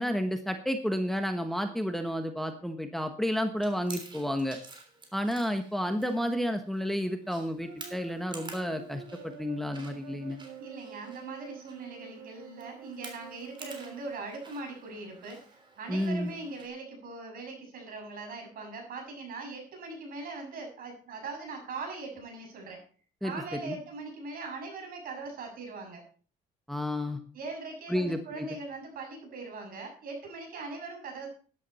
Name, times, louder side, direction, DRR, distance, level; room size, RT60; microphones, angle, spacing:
voice 1, 0.0-4.6 5.1-10.4 15.9-16.3 23.2-23.3 23.6-23.8 26.7-27.2 27.9-28.5, equal, ahead, 7 dB, 1.3 m, -31 dB
Chewing mastication, 3.6-16.7, right 3 dB, 25° right, 3.4 m, -51 dB
sound 1, 7.6-14.0, right 8 dB, 85° right, 1.8 m, -48 dB
voice 2, 10.6-22.8 23.2-26.1 27.3-31.3, right 3 dB, 60° right, 2 dB, 6.8 m, -41 dB
13.0 x 11.0 x 4.4 m, 0.41 s
cardioid pair, 110°, 17 cm